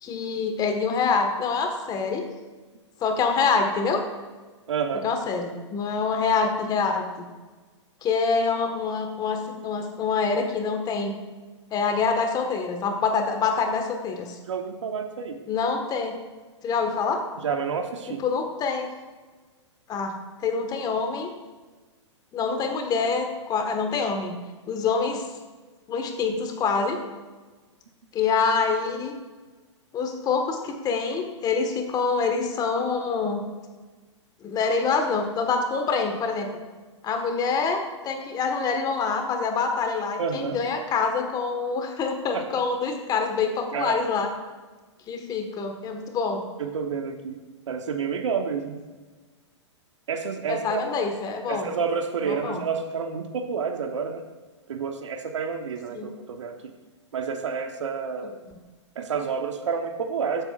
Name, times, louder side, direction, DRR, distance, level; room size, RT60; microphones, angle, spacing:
voice 1, 0.0-2.3 3.0-4.0 5.0-7.3 8.0-11.2 11.7-14.4 15.5-16.2 16.6-17.2 18.2-18.9 19.9-20.1 20.4-21.3 22.3-24.3 24.7-25.2 25.9-27.0 28.1-29.1 29.9-33.4 34.4-36.5 37.0-44.3 45.1-46.4 50.5-51.7 52.3-52.6 55.9-56.1, left 5 dB, 25° left, 4 dB, 1.5 m, -26 dB
voice 2, 4.7-5.1 14.5-15.4 17.4-18.2 40.2-40.6 42.3-42.6 43.7-44.0 46.6-48.8 50.1-50.8 51.5-54.2 54.7-56.7 57.1-58.4 58.9-60.4, right 6 dB, 75° right, 6 dB, 1.1 m, -29 dB
15.0 x 8.0 x 2.5 m, 1.3 s
hypercardioid pair, 120°, 16 cm